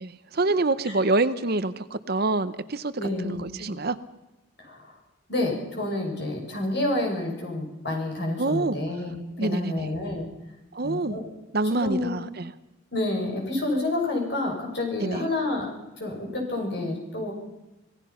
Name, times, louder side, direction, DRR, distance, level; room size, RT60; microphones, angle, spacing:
voice 1, 0.0-2.9 3.2-4.0 8.4-8.8 9.4-9.9 10.7-11.2 11.5-12.5 15.0-15.3, right 2 dB, 45° right, 13 dB, 0.8 m, -26 dB
voice 2, 3.0-3.6 4.6-4.9 5.3-10.3 10.8-11.2 11.6-12.1 12.9-15.7 16.0-17.3, left 2 dB, 50° left, 1 dB, 6.4 m, -29 dB
27.0 x 17.0 x 5.7 m, 1.0 s
head